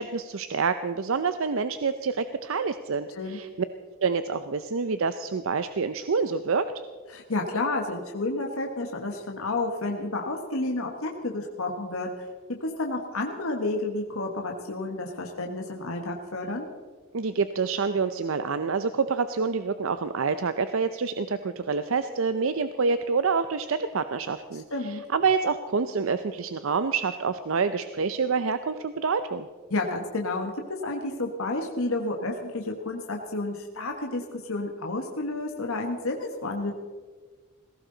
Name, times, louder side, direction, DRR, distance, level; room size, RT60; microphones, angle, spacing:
voice 1, 0.0-3.5 4.0-6.7 17.1-29.5, right 5 dB, 65° right, 11 dB, 0.6 m, -27 dB
voice 2, 7.1-12.1 12.6-16.6 24.7-25.0 29.7-36.7, left 2 dB, 70° left, 2 dB, 1.4 m, -30 dB
19.0 x 16.5 x 3.9 m, 1.5 s
head